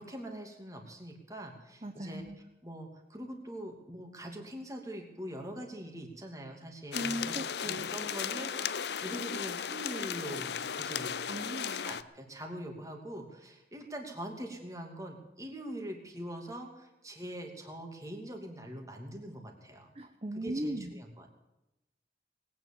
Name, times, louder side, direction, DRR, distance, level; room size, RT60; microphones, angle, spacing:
voice 1, 0.0-2.2 2.6-7.3 7.6-11.2 11.7-19.9 20.4-21.3, right 1 dB, 20° right, 3 dB, 2.6 m, -43 dB
voice 2, 1.8-2.4 6.9-7.9 11.3-11.8 19.9-20.9, right 1 dB, 35° right, 5 dB, 1.0 m, -38 dB
sound 1, 6.9-12.0, left 7 dB, 75° left, 0.6 m, -36 dB
19.5 x 9.5 x 7.4 m, 0.95 s
head